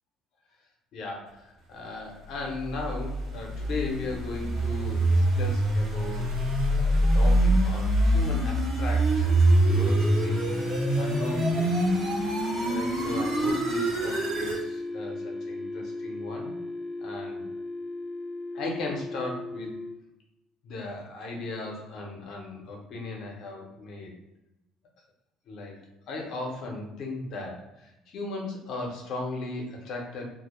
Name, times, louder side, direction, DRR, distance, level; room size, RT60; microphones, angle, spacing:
voice 1, 0.9-10.6 11.0-11.8 12.6-16.6 17.0-17.5 18.5-19.8 20.6-24.2 25.5-25.8 26.1-30.3, left 3 dB, 65° left, 0 dB, 0.6 m, -37 dB
sound 1, 2.4-14.6, right 1 dB, 60° right, 0.8 m, -25 dB
sound 2, 9.7-19.9, left 2 dB, 5° left, 0.4 m, -35 dB
2.1 x 2.0 x 3.0 m, 0.94 s
hypercardioid pair, 70°, 0 cm